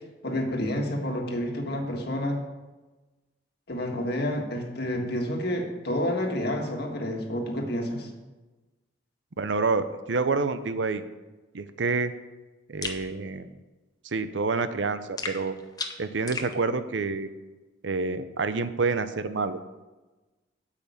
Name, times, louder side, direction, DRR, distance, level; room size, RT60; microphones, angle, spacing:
voice 1, 0.2-2.4 3.7-8.1, left 1 dB, 60° left, 2 dB, 1.6 m, -29 dB
voice 2, 9.4-11.0 11.5-12.1 12.7-13.5 14.1-15.6 16.0-17.3 17.8-19.6, right 4 dB, 70° right, 11 dB, 0.7 m, -28 dB
sound 1, 12.8-13.0 15.2-16.5, left 4 dB, 20° left, 0.9 m, -35 dB
8.5 x 5.8 x 8.1 m, 1.2 s
head